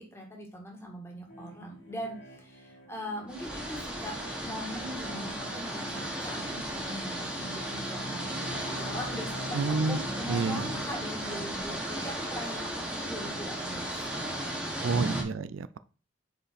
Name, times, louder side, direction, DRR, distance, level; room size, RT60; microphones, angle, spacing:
voice 1, 0.0-14.7, equal, 15° left, 1.5 m, -41 dB
sound 1, 1.3-11.0, equal, 65° left, 2.1 m, -44 dB
sound 2, 3.3-15.2, right 1 dB, 5° right, 1.3 m, -35 dB
voice 2, 9.5-10.0 10.3-10.7 14.8-15.8, right 4 dB, 85° right, 0.4 m, -29 dB
5.2 x 5.0 x 4.2 m
head